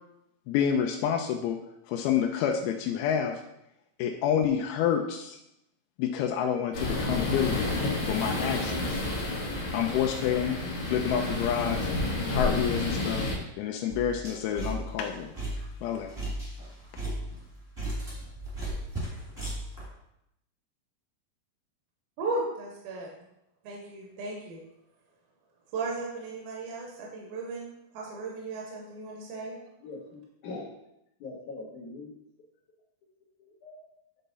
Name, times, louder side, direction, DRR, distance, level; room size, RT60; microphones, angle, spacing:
voice 1, 0.5-1.6 1.9-3.3 4.0-5.4 6.0-7.7 8.1-9.0 9.7-10.6 10.9-11.8 12.3-13.3 13.6-15.3 15.8-16.1, left 8 dB, 85° left, 2 dB, 2.5 m, -28 dB
sound 1, 6.7-13.4, left 2 dB, 45° left, 2.3 m, -30 dB
sound 2, 13.9-19.8, right 1 dB, 10° right, 1.4 m, -36 dB
voice 2, 22.2-23.1 23.6-24.6 25.7-27.7 27.9-29.5, right 3 dB, 75° right, -1 dB, 2.8 m, -35 dB
voice 3, 29.8-30.7 31.2-32.2 33.4-33.8, left 3 dB, 65° left, -1 dB, 2.2 m, -42 dB
9.2 x 3.8 x 4.0 m, 0.82 s
omnidirectional pair, 4.4 m